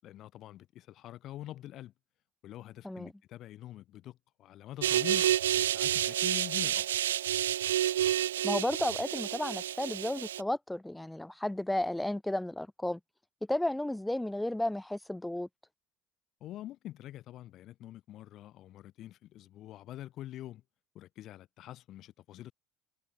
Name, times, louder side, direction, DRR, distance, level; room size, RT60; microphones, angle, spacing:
voice 1, 0.0-1.9 2.4-5.3 5.6-6.9 16.4-20.6 20.9-22.5, left 13 dB, 55° left, 6.2 m, -45 dB
sound 1, 4.8-10.4, right 11 dB, 80° right, 0.4 m, -29 dB
voice 2, 8.4-13.0 13.5-15.5, left 1 dB, 5° left, 0.4 m, -33 dB
figure-of-eight pair, 60°, 0 cm